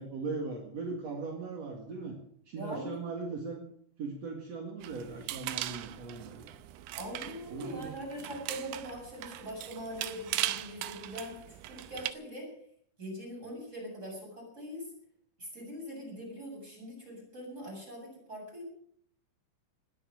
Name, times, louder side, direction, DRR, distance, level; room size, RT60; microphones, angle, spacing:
voice 1, 0.0-2.1 2.5-3.6 4.0-6.6 7.5-7.9, right 4 dB, 45° right, 2 dB, 2.4 m, -39 dB
voice 2, 2.6-3.2 6.9-12.5 13.0-14.9 15.4-18.7, equal, 15° right, -1 dB, 8.0 m, -42 dB
sound 1, 4.8-12.1, right 14 dB, 80° right, 2.6 m, -39 dB
20.0 x 11.0 x 6.4 m, 0.64 s
omnidirectional pair, 5.3 m